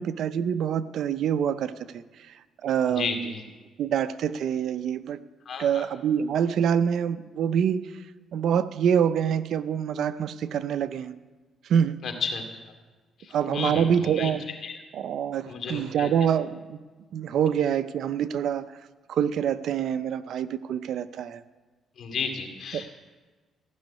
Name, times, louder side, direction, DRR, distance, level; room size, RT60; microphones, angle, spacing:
voice 1, 0.0-2.0 2.6-3.4 3.8-5.2 5.6-7.8 8.3-11.1 11.7-12.0 13.3-14.4 14.9-16.8 17.1-18.6 19.1-21.4 22.7-22.9, right 8 dB, 70° right, 13 dB, 0.6 m, -26 dB
voice 2, 2.9-3.4 5.5-5.8 12.0-12.4 13.5-14.3 14.6-14.8 15.5-16.1 22.0-22.9, left 5 dB, 60° left, 4 dB, 2.4 m, -32 dB
15.0 x 6.3 x 9.7 m, 1.3 s
cardioid pair, 90°, 0 cm